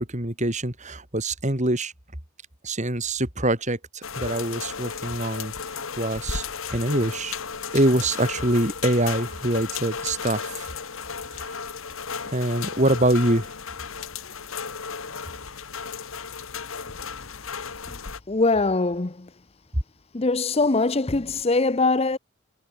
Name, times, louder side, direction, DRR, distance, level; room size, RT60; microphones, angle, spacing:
voice 1, 0.0-1.9 2.6-5.5 6.0-6.4 6.7-7.4 7.7-10.7 11.3-11.6 12.3-13.5, right 1 dB, 35° right, 3.7 m, -24 dB
sound 1, 4.0-18.2, left 6 dB, 65° left, 1.5 m, -34 dB
voice 2, 18.3-19.3 20.1-22.2, left 3 dB, 30° left, 0.7 m, -22 dB
head